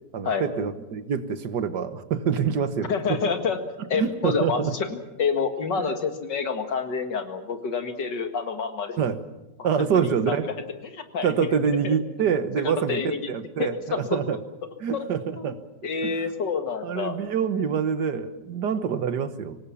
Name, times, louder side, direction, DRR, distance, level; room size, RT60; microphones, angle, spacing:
voice 1, 0.1-3.3 3.9-4.7 9.0-9.2 9.6-10.5 11.2-14.4 14.8-15.6 16.0-16.3 16.8-19.6, right 7 dB, 75° right, 11 dB, 1.8 m, -26 dB
voice 2, 2.9-3.6 3.9-4.6 4.9-9.0 9.9-10.4 10.9-11.3 11.8-12.0 12.9-13.2 13.6-13.7 14.9-15.0 15.4-15.5 15.8-17.1, left 5 dB, 85° left, 6 dB, 2.5 m, -28 dB
25.0 x 19.0 x 7.2 m, 1.0 s
omnidirectional pair, 1.9 m